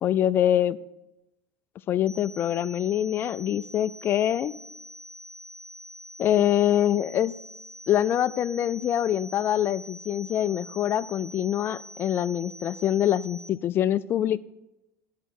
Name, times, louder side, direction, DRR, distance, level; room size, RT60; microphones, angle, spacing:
voice 1, 0.0-0.8 1.9-4.5 6.2-7.3 7.9-14.4, left 11 dB, 30° left, 15 dB, 0.3 m, -24 dB
sound 1, 2.1-13.5, equal, 10° left, 1.1 m, -45 dB
12.0 x 5.6 x 6.2 m, 0.94 s
cardioid pair, 160°, 8 cm